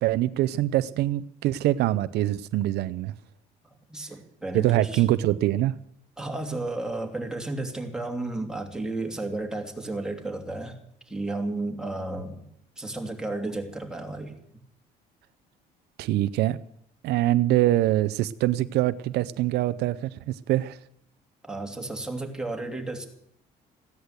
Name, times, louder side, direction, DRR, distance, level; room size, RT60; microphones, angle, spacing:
voice 1, 0.0-3.1 4.5-5.8 16.0-16.6 17.0-20.8, right 15 dB, 75° right, 15 dB, 0.6 m, -24 dB
voice 2, 3.9-5.0 6.2-10.7 11.1-12.5 12.8-14.4 21.4-23.1, right 2 dB, 5° right, 2 dB, 2.8 m, -33 dB
15.5 x 10.5 x 8.0 m, 0.72 s
cardioid pair, 110°, 17 cm